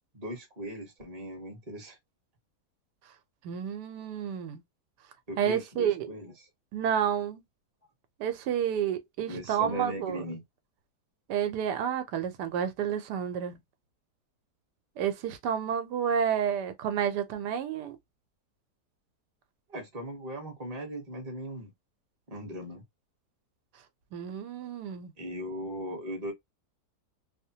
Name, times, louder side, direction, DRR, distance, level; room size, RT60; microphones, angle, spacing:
voice 1, 0.1-2.0 5.3-6.3 9.3-10.4 19.7-21.7 22.3-22.8 25.2-26.3, equal, 30° right, 0.9 m, -38 dB
voice 2, 3.4-4.6 5.4-6.1 6.7-7.4 8.2-10.2 11.3-13.6 15.0-18.0 24.1-25.1, right 8 dB, 90° right, 1.2 m, -30 dB
2.9 x 2.1 x 2.7 m
omnidirectional pair, 1.7 m